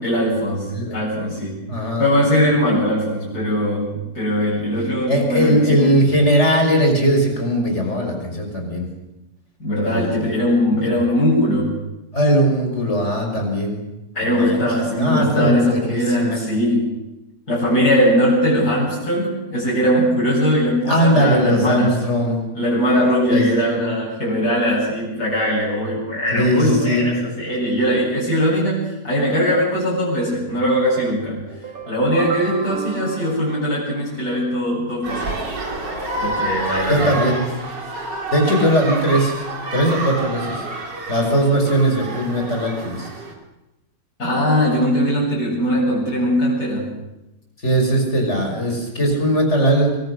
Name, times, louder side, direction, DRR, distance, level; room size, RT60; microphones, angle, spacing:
voice 1, 0.0-1.7 2.0-5.9 9.6-11.7 14.2-16.9 17.5-21.9 22.5-31.4 31.9-35.3 36.2-37.2 44.2-46.9, equal, 60° left, -6 dB, 8.4 m, -20 dB
voice 2, 1.7-2.1 5.1-8.9 9.8-10.2 12.1-13.8 14.2-14.6 14.9-16.4 20.9-22.4 23.3-23.9 26.3-27.1 36.9-37.4 38.3-39.4 39.7-40.6 41.1-43.1 47.6-49.9, equal, 40° left, 2 dB, 6.1 m, -19 dB
sound 1, 31.5-34.6, right 5 dB, 55° right, 3.1 m, -34 dB
sound 2, 35.0-43.3, right 2 dB, 85° right, 4.1 m, -28 dB
25.5 x 23.5 x 6.6 m, 0.95 s
omnidirectional pair, 1.8 m